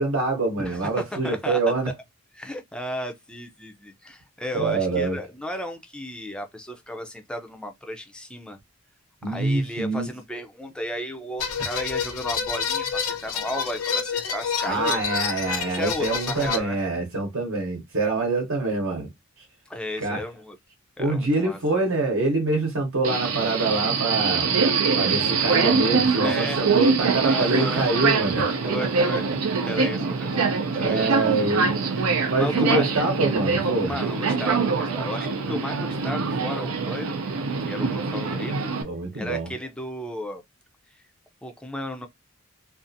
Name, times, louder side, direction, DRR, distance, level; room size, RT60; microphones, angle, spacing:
voice 1, 0.0-1.9 4.5-5.2 9.2-10.1 14.6-19.1 20.0-20.2 21.0-24.5 25.0-28.5 30.7-31.7 32.3-33.9 38.8-39.5, right 3 dB, 70° right, 0.9 m, -25 dB
voice 2, 0.6-1.6 2.3-8.6 9.3-15.0 15.7-16.8 19.7-20.6 21.0-21.6 26.2-26.6 27.3-27.9 28.6-29.2 29.7-30.5 30.8-31.7 32.4-32.9 33.9-37.3 37.7-38.7 39.1-40.4 41.4-42.1, left 1 dB, 5° left, 0.4 m, -34 dB
sound 1, 11.4-16.6, left 6 dB, 80° left, 0.6 m, -28 dB
Subway metro underground, 23.0-38.8, right 4 dB, 90° right, 0.5 m, -24 dB
2.6 x 2.4 x 2.6 m
head